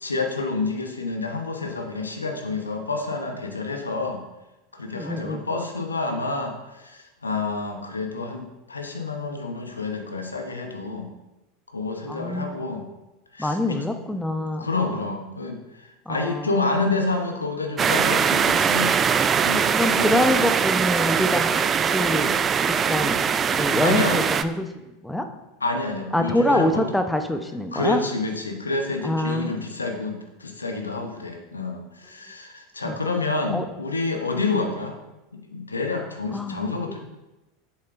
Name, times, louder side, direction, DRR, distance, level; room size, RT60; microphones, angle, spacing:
voice 1, 0.0-4.2 4.7-11.1 11.7-12.9 13.3-13.8 14.6-18.9 19.4-20.2 23.8-24.2 25.6-26.8 27.7-35.0 35.3-37.0, left 3 dB, 85° left, 4 dB, 0.9 m, -28 dB
voice 2, 4.9-5.5 12.1-12.5 13.4-14.7 16.1-16.5 19.7-22.4 22.7-23.2 23.5-24.7 25.0-25.3 26.1-28.0 29.0-29.5 32.8-33.0 33.5-33.6 36.3-37.0, left 1 dB, 5° left, 6 dB, 0.7 m, -25 dB
sound 1, 17.8-24.4, right 7 dB, 30° right, 0.4 m, -21 dB
7.6 x 7.2 x 2.5 m, 1.0 s
figure-of-eight pair, 85°, 0 cm